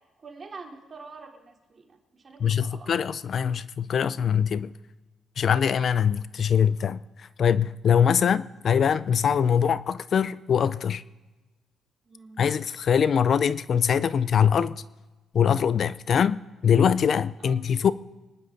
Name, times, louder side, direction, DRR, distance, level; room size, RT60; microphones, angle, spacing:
voice 1, 0.2-2.9 12.1-12.4 17.4-17.6, right 4 dB, 40° right, 3.4 m, -46 dB
voice 2, 2.4-4.7 5.4-11.0 12.4-14.8 15.3-17.9, left 7 dB, 55° left, 0.5 m, -23 dB
25.5 x 11.0 x 3.9 m
cardioid pair, 90°, 0 cm